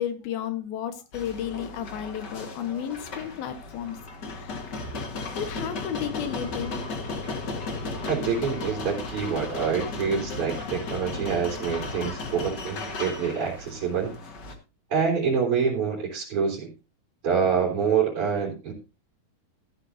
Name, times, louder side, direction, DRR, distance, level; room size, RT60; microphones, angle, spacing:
voice 1, 0.0-4.7 5.4-6.9, left 9 dB, 85° left, 9 dB, 3.2 m, -33 dB
sound 1, 1.1-14.5, left 3 dB, 45° left, 1.5 m, -35 dB
voice 2, 8.1-14.1 14.9-16.7 17.2-18.7, right 6 dB, 40° right, -4 dB, 4.5 m, -26 dB
14.5 x 12.0 x 2.7 m, 0.29 s
omnidirectional pair, 4.2 m